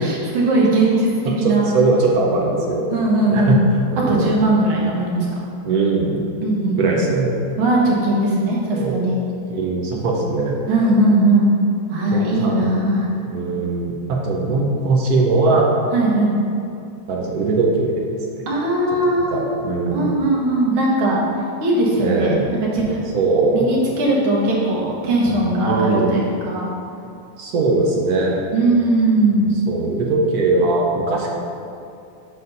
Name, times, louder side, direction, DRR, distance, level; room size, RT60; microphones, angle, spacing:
voice 1, 0.0-1.7 2.9-3.6 4.1-5.3 6.4-7.0 7.6-9.1 10.7-11.5 11.9-13.1 15.9-16.4 18.5-19.4 19.9-21.2 21.6-23.0 23.5-26.7 28.5-29.4, right 2 dB, 75° right, -3 dB, 2.1 m, -19 dB
voice 2, 1.4-2.9 3.3-3.6 3.9-4.5 5.6-6.2 6.8-7.4 8.7-9.0 9.5-10.5 10.8-10.9 12.1-12.7 13.3-15.7 17.1-17.9 18.3-18.4 19.3-20.1 22.0-22.5 23.1-23.7 25.6-26.2 27.4-28.4 29.3-31.3, right 3 dB, 60° right, -1 dB, 1.1 m, -20 dB
6.6 x 4.3 x 5.5 m, 2.6 s
omnidirectional pair, 2.3 m